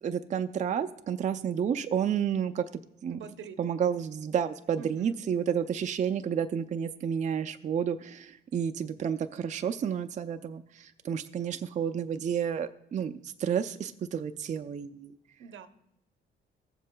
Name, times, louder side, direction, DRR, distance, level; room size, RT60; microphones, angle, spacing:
voice 1, 0.0-2.6 3.0-3.2 3.6-15.2, right 8 dB, 35° right, 8 dB, 0.4 m, -31 dB
voice 2, 3.1-3.6 4.8-5.2 15.4-15.7, right 6 dB, 75° right, 9 dB, 0.7 m, -45 dB
16.0 x 7.3 x 2.2 m, 0.80 s
cardioid pair, 90°, 20 cm